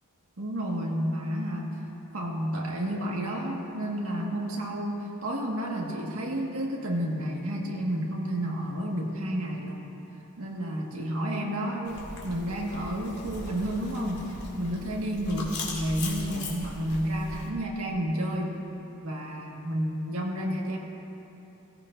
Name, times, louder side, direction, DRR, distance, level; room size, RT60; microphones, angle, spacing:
voice 1, 0.4-1.8 2.1-9.9 10.4-18.6 19.0-20.8, equal, 75° right, -2 dB, 2.0 m, -31 dB
sound 1, 11.8-17.5, left 2 dB, 50° left, 2.2 m, -39 dB
17.0 x 15.5 x 2.7 m, 2.9 s
head